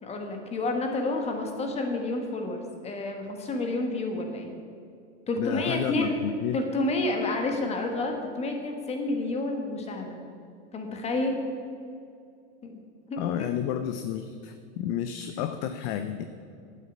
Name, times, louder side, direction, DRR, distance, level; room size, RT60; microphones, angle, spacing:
voice 1, 0.0-4.5 5.3-6.2 6.5-10.2 10.7-11.4 12.6-12.8 13.1-13.2, left 2 dB, 20° left, 3 dB, 1.6 m, -29 dB
voice 2, 5.3-6.6 13.2-16.2, left 10 dB, 40° left, 9 dB, 0.6 m, -31 dB
9.4 x 8.5 x 8.6 m, 2.4 s
supercardioid pair, 145°, 35 cm